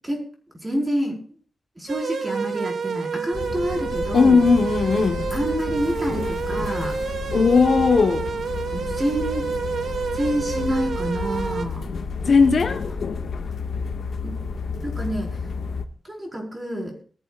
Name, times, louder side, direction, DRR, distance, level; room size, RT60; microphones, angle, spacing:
voice 1, 0.6-1.2 1.8-4.4 5.3-6.9 8.7-9.5 10.1-11.9 14.2-14.5 14.8-15.5 16.0-17.0, right 1 dB, 15° right, 4.8 m, -28 dB
sound 1, 1.9-11.7, right 5 dB, 90° right, 2.2 m, -29 dB
sound 2, 3.3-15.8, left 5 dB, 75° left, 1.6 m, -31 dB
voice 2, 4.1-5.2 7.3-8.3 12.3-12.8, left 4 dB, 50° left, 1.1 m, -17 dB
22.5 x 14.0 x 2.4 m
wide cardioid pair, 175°, 0 cm